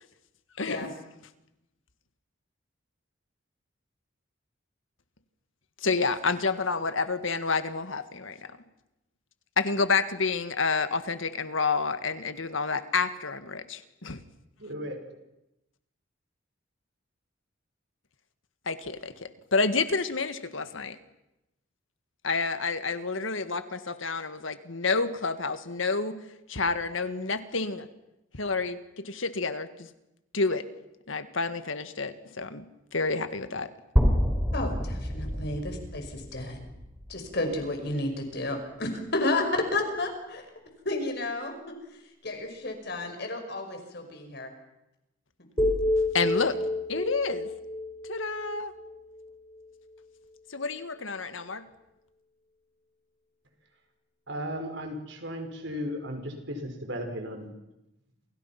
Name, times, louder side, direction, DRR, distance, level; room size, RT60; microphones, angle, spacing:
voice 1, 0.6-0.9 5.8-8.5 9.6-14.2 18.7-21.0 22.2-26.2 26.5-27.9 28.4-29.9 30.3-30.7 31.1-32.7 32.9-33.7 46.1-46.6 46.9-47.5 48.1-48.7 50.5-51.6, left 4 dB, 80° left, 11 dB, 1.8 m, -29 dB
voice 2, 14.6-15.0 54.3-57.5, equal, 60° right, 4 dB, 5.6 m, -35 dB
sound 1, 34.0-37.9, equal, 5° right, 5.5 m, -28 dB
voice 3, 34.5-36.7 37.1-40.5 40.8-44.5, left 2 dB, 55° left, 5 dB, 5.4 m, -32 dB
sound 2, 45.6-49.7, left 1 dB, 20° left, 5.1 m, -30 dB
29.0 x 29.0 x 5.9 m, 0.91 s
head